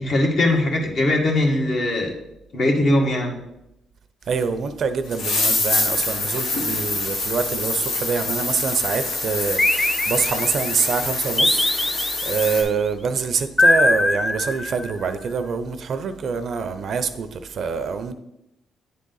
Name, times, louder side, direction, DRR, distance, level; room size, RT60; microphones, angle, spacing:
voice 1, 0.0-2.1 2.5-3.4, left 1 dB, 60° left, 1.7 m, -20 dB
voice 2, 4.3-18.1, right 5 dB, 60° right, 0.5 m, -25 dB
sound 1, 4.4-4.5 5.1-12.6, left 2 dB, 90° left, 1.6 m, -25 dB
sound 2, 9.6-10.7 11.4-12.5 13.6-15.1, left 2 dB, 15° left, 0.4 m, -21 dB
9.2 x 3.7 x 3.9 m
cardioid pair, 90°, 0 cm